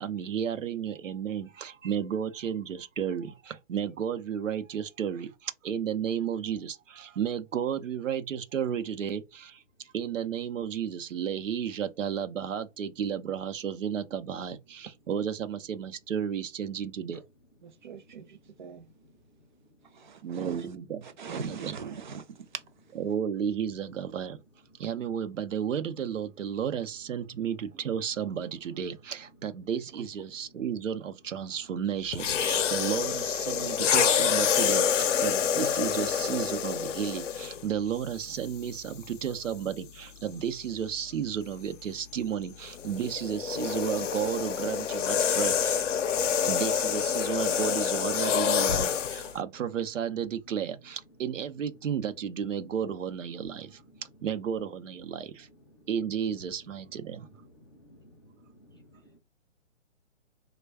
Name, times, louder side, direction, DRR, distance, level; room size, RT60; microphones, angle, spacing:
voice 1, 0.0-17.2 20.2-21.8 22.9-24.4 24.8-45.8 46.4-53.8 54.2-55.5 55.9-57.3, right 8 dB, 80° right, 0.7 m, -33 dB
voice 2, 17.6-18.9 20.0-20.7 21.0-22.5 30.0-30.1, right 5 dB, 40° right, 0.5 m, -41 dB
sound 1, 32.1-37.7 38.5-38.7 42.6-49.3, left 8 dB, 70° left, 0.6 m, -27 dB
voice 3, 57.6-58.3 58.6-59.1, equal, 20° left, 0.4 m, -56 dB
3.4 x 2.2 x 3.4 m
hypercardioid pair, 155°, 37 cm